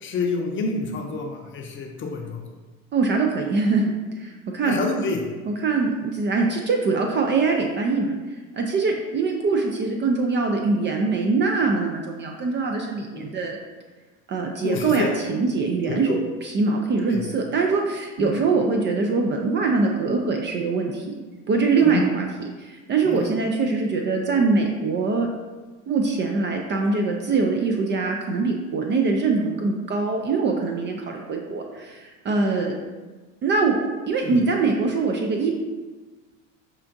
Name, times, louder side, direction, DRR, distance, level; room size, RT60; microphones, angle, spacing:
voice 1, 0.0-2.4 4.7-5.2 13.1-13.3 14.6-15.1 15.9-16.2 17.1-17.3 18.2-18.3 21.8-22.1 23.0-23.2 34.2-34.4, left 4 dB, 30° left, 1 dB, 0.6 m, -28 dB
voice 2, 2.9-4.8 5.4-8.1 8.5-13.6 14.3-16.2 16.4-21.1 21.5-22.3 22.6-25.3 25.9-32.7 33.4-33.8 34.1-35.5, right 4 dB, 30° right, 2 dB, 0.4 m, -23 dB
5.6 x 2.5 x 2.6 m, 1.3 s
hypercardioid pair, 90°, 38 cm